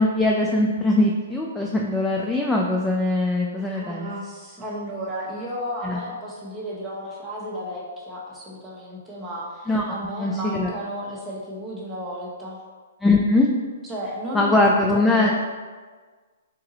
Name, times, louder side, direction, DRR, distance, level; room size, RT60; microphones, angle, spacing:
voice 1, 0.0-4.1 5.8-6.0 9.7-9.8 10.2-10.7 13.0-13.5 14.3-15.3, left 2 dB, 10° left, -2 dB, 0.3 m, -21 dB
voice 2, 3.6-12.6 13.8-15.3, equal, 10° right, -6 dB, 1.1 m, -33 dB
3.9 x 2.6 x 3.9 m, 1.5 s
hypercardioid pair, 125°, 0 cm